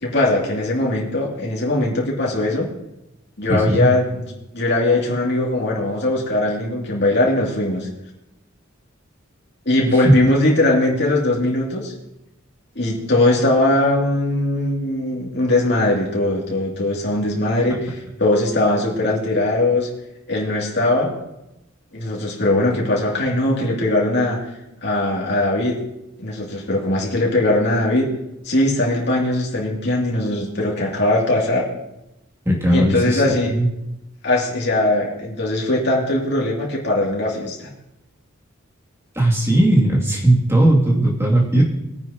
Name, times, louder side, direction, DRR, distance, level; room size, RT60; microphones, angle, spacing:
voice 1, 0.0-2.7 3.4-7.9 9.7-11.9 12.7-19.9 20.3-21.1 21.9-25.8 26.2-28.1 28.4-31.7 32.7-33.6 34.2-37.7, left 1 dB, 55° left, -3 dB, 2.5 m, -20 dB
voice 2, 3.5-3.9 9.9-10.1 32.5-33.7 39.1-41.6, right 1 dB, 15° right, -3 dB, 2.4 m, -17 dB
20.5 x 9.5 x 2.9 m, 0.91 s
head